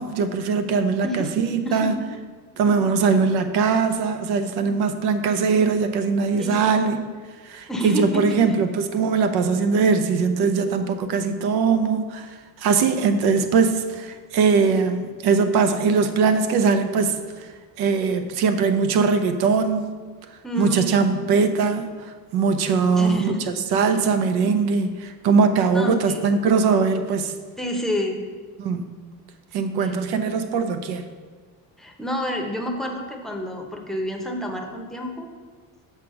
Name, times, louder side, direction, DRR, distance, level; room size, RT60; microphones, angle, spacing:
voice 1, 0.0-2.0 2.6-7.0 7.4-12.3 12.6-17.5 17.8-19.9 20.6-21.9 22.3-23.3 23.7-27.3 28.6-28.8 29.5-31.0, right 5 dB, 75° right, 9 dB, 0.8 m, -21 dB
voice 2, 6.4-6.8 7.7-8.3 20.4-21.0 22.9-23.4 25.7-26.2 27.6-28.2 29.8-29.9 31.8-35.3, equal, ahead, 1 dB, 0.8 m, -28 dB
6.6 x 4.8 x 6.3 m, 1.5 s
cardioid pair, 150°, 38 cm